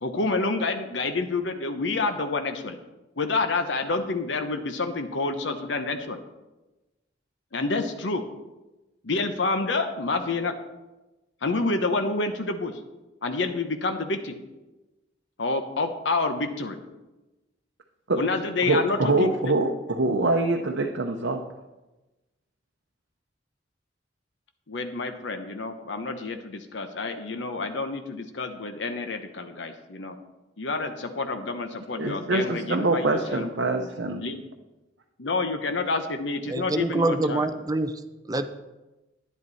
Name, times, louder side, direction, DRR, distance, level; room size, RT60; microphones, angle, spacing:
voice 1, 0.0-2.8 3.2-6.2 7.5-8.2 9.0-10.5 11.4-12.7 13.2-14.4 15.4-16.8 18.1-19.3 24.7-30.2 30.6-33.9 34.2-34.4 35.2-37.5, left 3 dB, 80° left, 7 dB, 0.9 m, -28 dB
voice 2, 18.7-21.4 32.0-34.3, right 2 dB, 75° right, 2 dB, 0.8 m, -24 dB
voice 3, 36.5-38.0 38.3-38.5, right 2 dB, 20° right, 9 dB, 0.6 m, -25 dB
11.0 x 10.5 x 4.1 m, 1.1 s
head